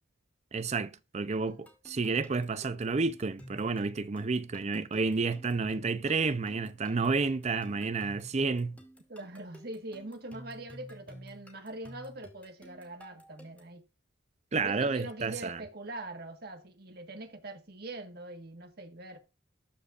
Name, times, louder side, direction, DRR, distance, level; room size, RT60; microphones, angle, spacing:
voice 1, 0.5-8.8 14.5-15.6, right 4 dB, 35° right, 0.5 m, -30 dB
sound 1, 1.5-13.8, equal, 10° left, 2.6 m, -52 dB
voice 2, 9.1-13.8 14.6-19.2, right 2 dB, 55° right, 1.5 m, -43 dB
13.0 x 5.0 x 2.5 m
head